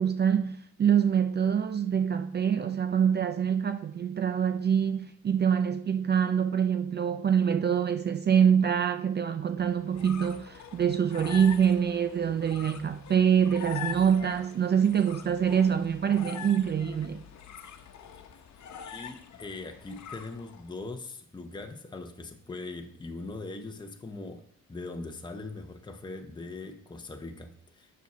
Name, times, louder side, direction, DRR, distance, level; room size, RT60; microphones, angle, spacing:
voice 1, 0.0-17.2, right 8 dB, 35° right, 0.5 m, -25 dB
sound 1, 9.6-20.7, left 8 dB, 65° left, 1.1 m, -44 dB
voice 2, 18.8-24.4 24.7-28.0, left 3 dB, 15° left, 1.0 m, -41 dB
7.0 x 6.0 x 6.1 m
cardioid pair, 90°, 30 cm